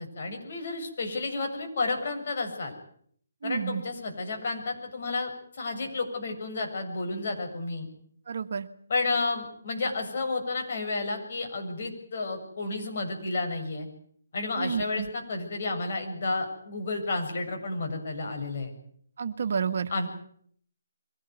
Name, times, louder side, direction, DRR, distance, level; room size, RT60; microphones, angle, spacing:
voice 1, 0.0-2.7 3.4-7.9 8.9-13.9 14.3-18.7 19.9-20.1, left 3 dB, 55° left, 4 dB, 7.3 m, -31 dB
voice 2, 3.4-3.8 8.3-8.7 14.6-15.1 19.2-19.9, right 6 dB, 60° right, 9 dB, 1.7 m, -30 dB
23.5 x 18.0 x 9.4 m, 0.63 s
hypercardioid pair, 155°, 0 cm